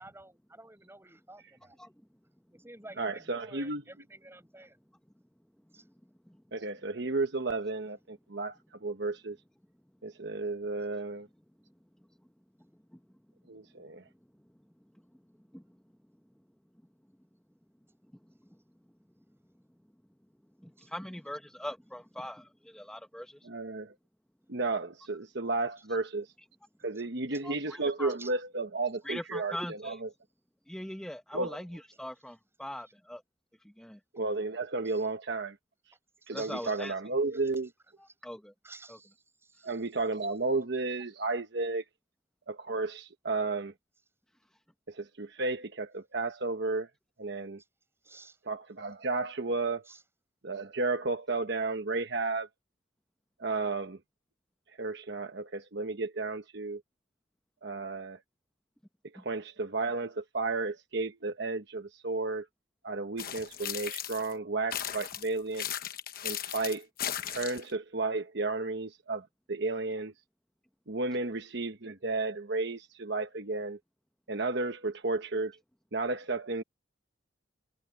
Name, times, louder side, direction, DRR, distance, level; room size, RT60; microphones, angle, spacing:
voice 1, 0.0-1.8 2.5-4.8 5.7-5.8 20.8-20.9 27.0-27.1 27.3-27.4 28.2-28.3 34.8-35.1 36.2-36.9 37.3-37.5 38.6-39.8 48.0-48.4 49.8-50.0, right 2 dB, 10° right, 6.9 m, -52 dB
voice 2, 3.0-3.8 6.5-9.4 10.0-11.3 13.5-14.0 23.4-23.9 24.5-26.3 26.8-30.1 31.3-31.6 34.1-35.5 36.3-37.7 39.6-41.8 42.5-43.7 44.9-46.9 47.2-47.6 48.5-49.8 50.4-52.5 53.4-54.0 54.8-56.8 57.6-58.2 59.1-62.4 62.8-65.6 66.2-66.9 67.3-70.1 70.9-73.8 74.3-75.6 75.9-76.6, right 3 dB, 55° right, 1.1 m, -33 dB
voice 3, 20.6-23.5 27.4-28.1 29.0-30.0 30.7-33.2 33.8-34.0 36.3-36.9 38.0-38.5 38.9-39.0 59.2-59.3, left 1 dB, 5° left, 0.9 m, -41 dB
sound 1, 63.2-64.3 64.7-67.7, left 10 dB, 45° left, 1.0 m, -37 dB
head